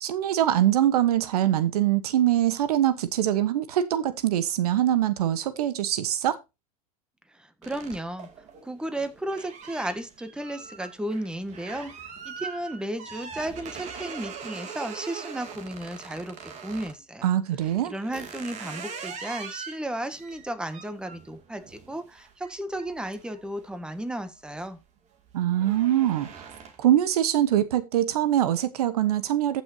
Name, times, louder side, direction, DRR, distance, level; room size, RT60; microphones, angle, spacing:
voice 1, 0.0-6.4 17.2-17.9 25.3-26.5 26.8-29.6, right 12 dB, 80° right, 1.1 m, -23 dB
voice 2, 7.3-8.3 8.6-11.9 12.2-17.3 17.8-24.8, right 1 dB, 5° right, 1.5 m, -34 dB
sound 1, 7.6-17.0 17.6-24.0 24.4-24.8 25.1-27.0, right 6 dB, 35° right, 2.5 m, -42 dB
14.5 x 6.2 x 2.8 m
hypercardioid pair, 110°, 19 cm